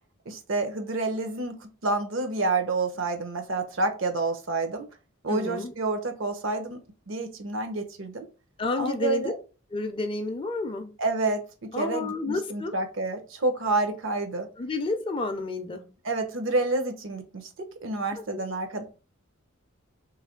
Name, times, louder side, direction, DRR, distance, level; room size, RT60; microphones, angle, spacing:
voice 1, 0.3-4.9 5.2-6.8 7.1-8.3 8.8-9.3 11.0-14.5 16.0-18.8, right 3 dB, 65° right, 0.7 m, -29 dB
voice 2, 5.3-5.7 8.6-9.4 9.7-11.0 11.7-12.7 14.6-15.9 18.1-18.4, left 3 dB, 25° left, 0.4 m, -30 dB
3.2 x 3.1 x 3.7 m
head